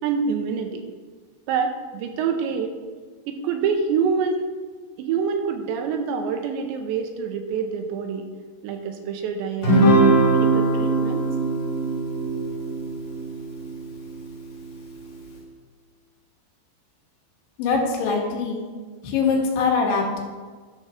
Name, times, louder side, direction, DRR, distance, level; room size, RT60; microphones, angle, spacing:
voice 1, 0.0-0.8 1.5-2.7 3.3-4.5 5.0-8.3 8.6-11.2, right 6 dB, 80° right, 5 dB, 3.0 m, -26 dB
Guitar, 9.6-14.2, right 2 dB, 55° left, 3.7 m, -21 dB
voice 2, 17.6-18.6 19.0-20.2, left 4 dB, 85° left, 0 dB, 3.9 m, -22 dB
12.0 x 4.7 x 6.2 m, 1.5 s
omnidirectional pair, 5.1 m